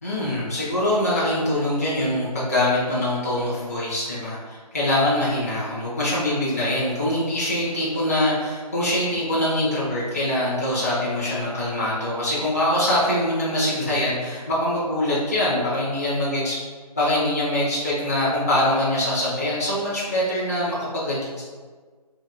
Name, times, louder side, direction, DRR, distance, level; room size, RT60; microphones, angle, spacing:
voice 1, 0.0-16.6 16.9-21.2, left 1 dB, 25° left, -9 dB, 0.7 m, -23 dB
2.8 x 2.8 x 3.9 m, 1.5 s
hypercardioid pair, 175°, 21 cm